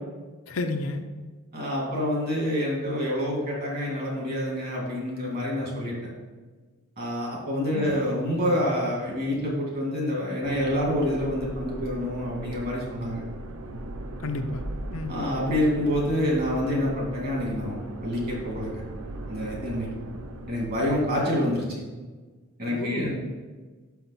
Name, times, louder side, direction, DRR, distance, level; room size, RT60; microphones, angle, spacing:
voice 1, 0.5-1.0 7.7-8.0 14.2-14.6 14.9-15.2 22.7-23.2, left 2 dB, 70° left, 6 dB, 0.6 m, -31 dB
voice 2, 1.5-5.9 7.0-13.2 15.1-18.8 19.3-19.9 20.5-21.8 22.6-23.2, left 1 dB, 45° right, -2 dB, 2.2 m, -27 dB
sound 1, 10.4-21.4, right 1 dB, 85° right, 0.7 m, -38 dB
5.9 x 5.8 x 4.2 m, 1.3 s
head